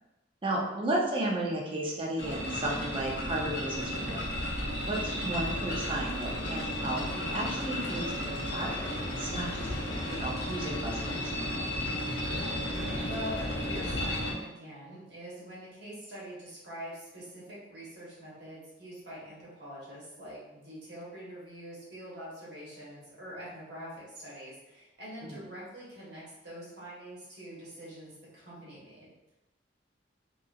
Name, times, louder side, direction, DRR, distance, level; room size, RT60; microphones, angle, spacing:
voice 1, 0.4-4.2 4.8-8.0 8.5-9.7 10.1-11.3 25.2-25.4, right 1 dB, 30° right, -2 dB, 0.5 m, -34 dB
sound 1, 2.2-14.3, left 1 dB, 70° left, 0.7 m, -33 dB
voice 2, 12.7-29.3, equal, 65° right, -6 dB, 1.1 m, -44 dB
2.7 x 2.5 x 2.3 m, 0.96 s
head